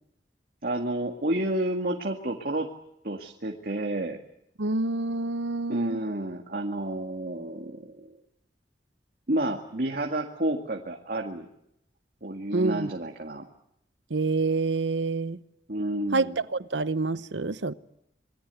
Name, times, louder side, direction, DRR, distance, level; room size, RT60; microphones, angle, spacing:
voice 1, 0.6-2.7 3.0-4.2 5.7-8.1 9.3-11.5 12.2-13.4 15.7-16.4, right 1 dB, 55° right, 2.1 m, -30 dB
voice 2, 4.6-6.0 12.5-12.9 14.1-15.4 16.1-17.7, right 3 dB, 85° right, 1.0 m, -27 dB
27.5 x 22.0 x 8.3 m
head